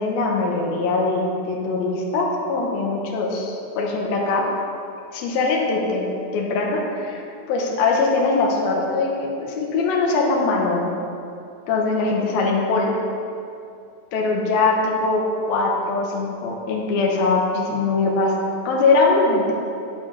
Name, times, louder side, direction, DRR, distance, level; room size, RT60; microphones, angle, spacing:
voice 1, 0.0-4.5 5.1-7.2 7.5-10.9 11.7-13.0 14.1-18.3 18.7-19.5, left 3 dB, 75° left, -1 dB, 3.0 m, -21 dB
11.0 x 5.2 x 6.9 m, 2.5 s
omnidirectional pair, 4.4 m